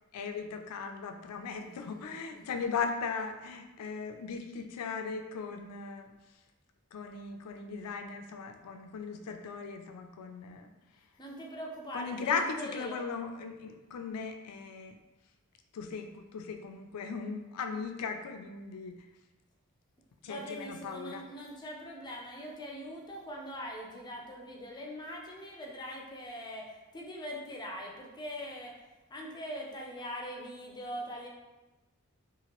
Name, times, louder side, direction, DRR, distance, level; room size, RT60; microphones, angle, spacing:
voice 1, 0.1-6.1 6.9-10.7 11.9-15.0 15.7-19.1 20.2-21.3, left 5 dB, 90° left, 6 dB, 0.4 m, -38 dB
voice 2, 1.7-2.6 11.2-13.0 20.3-26.7 26.9-28.7 29.1-31.3, equal, 20° left, -1 dB, 0.4 m, -42 dB
2.9 x 2.4 x 2.9 m, 1.1 s
head